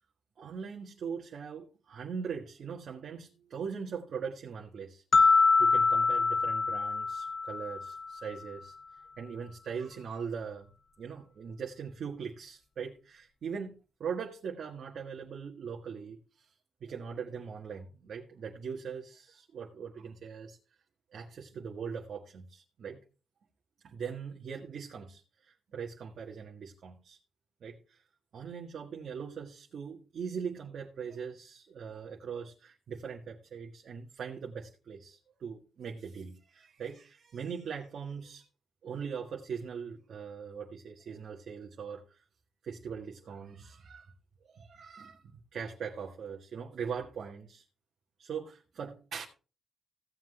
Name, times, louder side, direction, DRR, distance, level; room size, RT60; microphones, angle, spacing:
voice 1, 0.4-8.7 9.2-10.7 11.0-16.5 16.8-20.6 21.1-23.0 23.8-27.2 27.6-28.0 28.3-38.4 38.8-42.2 42.6-44.1 44.4-47.6 48.2-49.3, right 6 dB, 70° right, -1 dB, 1.6 m, -41 dB
sound 1, 5.1-8.2, left 4 dB, 50° left, 0.7 m, -25 dB
16.0 x 7.6 x 3.2 m, 0.32 s
cardioid pair, 70°, 0 cm